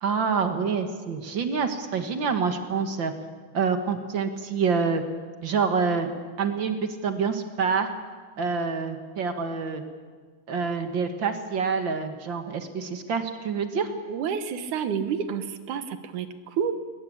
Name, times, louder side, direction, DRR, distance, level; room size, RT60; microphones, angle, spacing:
voice 1, 0.0-3.1 3.5-5.0 5.4-6.1 6.4-7.9 8.4-9.8 10.5-13.9, right 5 dB, 45° right, 7 dB, 1.7 m, -27 dB
voice 2, 14.1-16.7, right 7 dB, 70° right, 10 dB, 2.6 m, -29 dB
21.5 x 21.0 x 8.7 m, 1.5 s
omnidirectional pair, 3.7 m